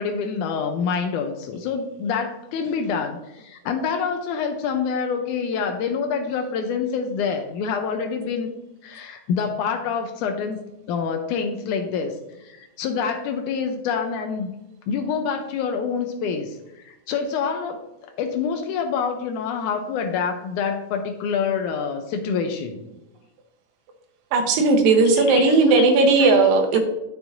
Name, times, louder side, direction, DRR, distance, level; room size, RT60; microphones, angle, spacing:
voice 1, 0.0-8.5 8.8-14.5 14.9-16.6 16.8-22.8 25.1-25.9 26.2-26.3 26.7-26.8, left 6 dB, 85° left, 5 dB, 1.8 m, -27 dB
voice 2, 24.3-26.8, right 3 dB, 75° right, 3 dB, 2.6 m, -16 dB
10.0 x 7.0 x 2.6 m, 0.94 s
omnidirectional pair, 4.2 m